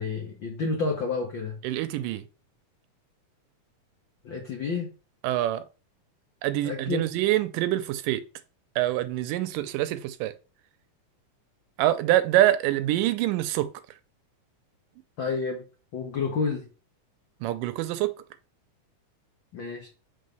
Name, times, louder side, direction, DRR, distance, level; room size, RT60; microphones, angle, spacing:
voice 1, 0.0-1.6 4.2-4.9 6.6-7.0 15.2-15.6 15.9-16.6 19.5-19.9, left 4 dB, 85° left, 1.0 m, -29 dB
voice 2, 1.6-2.3 5.2-5.6 6.4-8.2 8.8-10.3 11.8-13.7 17.4-18.1, right 14 dB, 80° right, 2.1 m, -25 dB
5.5 x 3.6 x 5.2 m
omnidirectional pair, 3.9 m